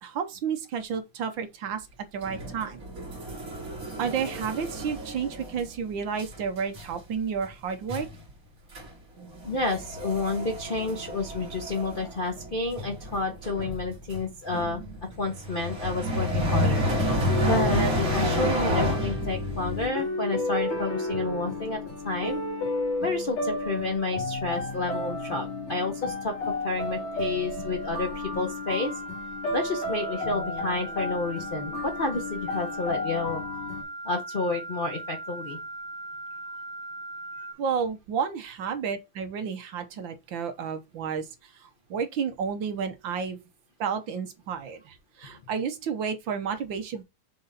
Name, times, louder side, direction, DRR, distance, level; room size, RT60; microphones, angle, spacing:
voice 1, 0.0-1.9 2.1-2.8 4.0-8.1 37.6-43.4 43.8-47.0, right 6 dB, 65° right, 1.6 m, -31 dB
sound 1, 2.2-5.8 6.2-6.4 6.7-7.0 7.4-7.5 7.9-8.2 8.7-8.9 9.2-19.9, equal, 40° right, 2.4 m, -30 dB
voice 2, 9.4-14.8 15.2-22.4 23.0-28.9 29.5-33.4 34.0-35.6 37.4-37.5, left 3 dB, 50° left, 0.6 m, -30 dB
sound 2, 16.8-33.8, left 2 dB, 85° left, 3.6 m, -32 dB
sound 3, 27.6-37.5, right 2 dB, 5° left, 0.9 m, -39 dB
6.6 x 3.9 x 4.1 m
omnidirectional pair, 2.4 m